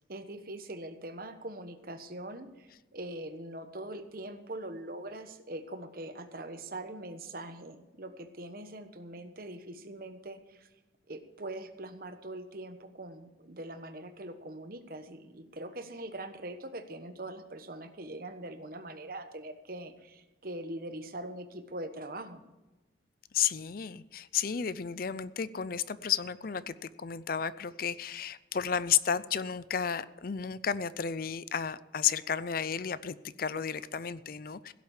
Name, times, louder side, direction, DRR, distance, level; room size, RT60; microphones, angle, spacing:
voice 1, 0.1-10.7 11.1-22.4, right 1 dB, 50° right, 9 dB, 1.2 m, -42 dB
voice 2, 23.3-34.7, left 8 dB, 50° left, 17 dB, 0.5 m, -32 dB
16.5 x 7.7 x 7.3 m, 1.1 s
head